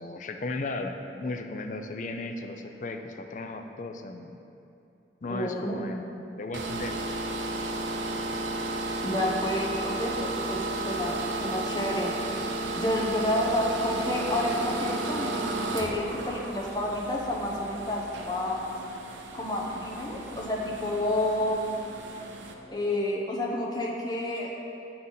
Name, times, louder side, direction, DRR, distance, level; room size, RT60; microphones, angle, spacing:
voice 1, 0.0-4.4 5.2-6.9, left 2 dB, 40° left, 6 dB, 0.4 m, -36 dB
voice 2, 5.3-5.8 9.0-12.1 12.4-18.6 19.3-21.7 22.7-24.5, left 1 dB, 20° left, -2 dB, 0.8 m, -30 dB
sound 1, 6.5-22.5, right 2 dB, 80° right, 0.6 m, -33 dB
7.7 x 5.6 x 3.9 m, 2.7 s
head